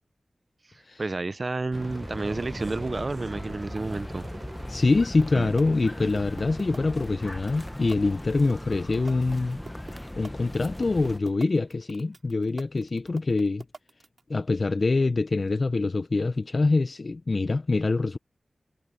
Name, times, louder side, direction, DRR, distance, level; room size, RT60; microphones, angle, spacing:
voice 1, 0.7-4.3 5.3-5.5, right 3 dB, 45° right, 0.5 m, -31 dB
Crowd / Fireworks, 1.6-7.0 7.3-8.0 8.3-11.8, right 4 dB, 85° right, 4.9 m, -49 dB
sound 1, 1.7-11.2, left 1 dB, 10° left, 0.9 m, -38 dB
voice 2, 4.7-9.6 10.2-13.6 14.3-18.2, left 3 dB, 50° left, 0.5 m, -25 dB
sound 2, 5.0-14.2, right 3 dB, 60° right, 2.4 m, -43 dB
wide cardioid pair, 85°, 0 cm